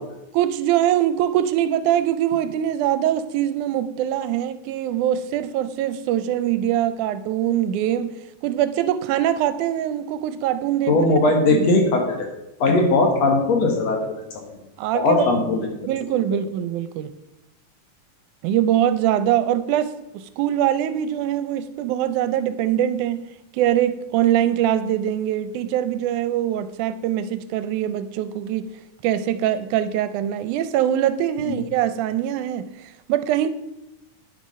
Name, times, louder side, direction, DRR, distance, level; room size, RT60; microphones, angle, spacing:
voice 1, 0.3-8.1 8.4-11.1 11.5-11.7 12.7-12.8 14.8-15.3 15.8-17.1 18.4-23.2 23.5-28.7 29.0-33.5, right 11 dB, 80° right, 2.0 m, -23 dB
voice 2, 10.9-12.3 12.6-14.6 14.9-15.7 16.3-16.4 31.4-31.6, left 2 dB, 60° left, 2.3 m, -19 dB
9.7 x 6.8 x 5.3 m
omnidirectional pair, 3.5 m